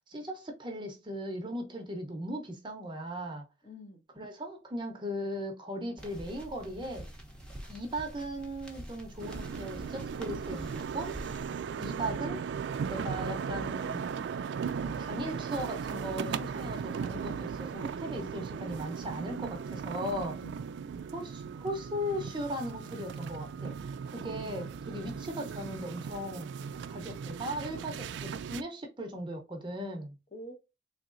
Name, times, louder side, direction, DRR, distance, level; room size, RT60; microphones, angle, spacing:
voice 1, 0.1-3.4 4.2-7.1 7.7-11.2 11.8-12.4 12.8-14.1 14.8-20.4 21.1-23.8 24.1-26.5 26.9-30.2, equal, 25° right, 0.7 m, -38 dB
voice 2, 3.6-4.0 20.4-20.6 24.2-24.8 30.3-30.5, equal, 40° left, 1.1 m, -48 dB
sound 1, 6.0-11.5, right 1 dB, 5° left, 0.8 m, -46 dB
sound 2, 9.2-28.6, right 6 dB, 75° right, 0.3 m, -37 dB
3.8 x 2.9 x 2.5 m
head